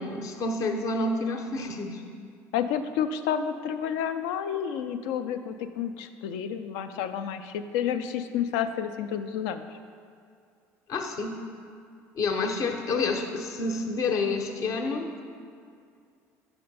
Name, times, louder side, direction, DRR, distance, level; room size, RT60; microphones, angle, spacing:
voice 1, 0.0-2.0 10.9-11.4 12.1-15.2, left 3 dB, 55° left, 4 dB, 0.8 m, -29 dB
voice 2, 2.5-9.6, left 8 dB, 80° left, 9 dB, 0.4 m, -30 dB
5.8 x 4.3 x 5.4 m, 2.3 s
supercardioid pair, 95°, 7 cm